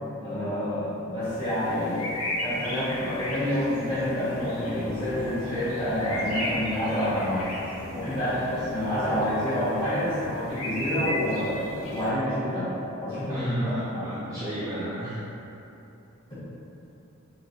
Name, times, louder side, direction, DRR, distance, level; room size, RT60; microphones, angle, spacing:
voice 1, 0.2-2.1 2.4-7.4 7.9-12.7 13.0-13.5 13.9-14.0, left 1 dB, 20° left, -14 dB, 1.3 m, -28 dB
sound 1, 1.2-12.1, left 1 dB, 90° left, 0.6 m, -35 dB
voice 2, 13.3-15.2, equal, 15° right, -11 dB, 0.4 m, -32 dB
4.2 x 2.2 x 2.6 m, 2.8 s
head